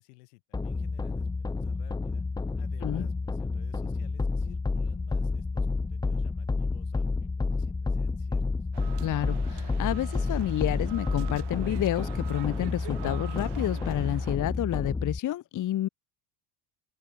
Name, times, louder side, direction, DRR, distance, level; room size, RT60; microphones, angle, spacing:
voice 1, 0.0-2.2 2.6-8.7, left 24 dB, 85° left, 3.1 m, -55 dB
sound 1, 0.5-15.2, left 3 dB, 10° left, 0.5 m, -30 dB
sound 2, 8.7-14.4, right 18 dB, 60° right, 1.3 m, -45 dB
voice 2, 9.0-15.9, left 13 dB, 40° left, 0.8 m, -30 dB
supercardioid pair, 80°, 46 cm